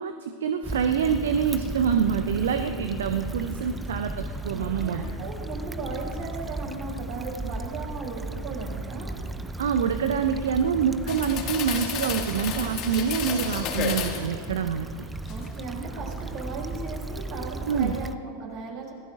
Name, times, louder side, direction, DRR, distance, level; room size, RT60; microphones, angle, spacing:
voice 1, 0.0-5.1 7.4-7.5 9.6-15.1 17.7-18.0, right 7 dB, 60° right, 8 dB, 0.7 m, -26 dB
Stream / Traffic noise roadway noise / Trickle dribble, 0.6-18.2, right 2 dB, 10° right, 0.6 m, -35 dB
voice 2, 4.5-9.1 15.3-18.9, right 3 dB, 45° right, -1 dB, 5.2 m, -36 dB
sound 1, 11.1-14.3 14.8-15.7 16.1-16.3, left 7 dB, 35° left, 2.0 m, -32 dB
26.5 x 18.0 x 2.5 m, 2.2 s
figure-of-eight pair, 90°, 0 cm